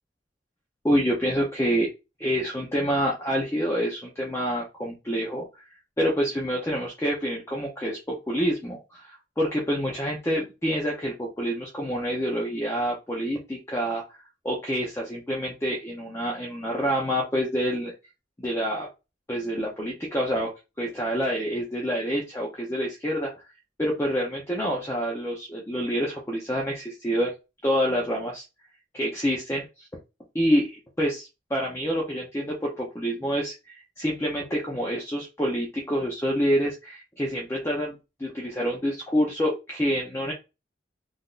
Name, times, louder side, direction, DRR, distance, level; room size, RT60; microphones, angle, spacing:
voice 1, 0.8-1.9 2.2-5.6 6.0-14.2 14.4-17.9 18.4-18.9 19.3-20.5 20.8-23.3 23.8-27.3 27.6-28.4 28.9-29.6 30.3-37.9 38.2-40.3, equal, 15° left, -3 dB, 0.6 m, -27 dB
3.8 x 2.5 x 2.4 m, 0.27 s
head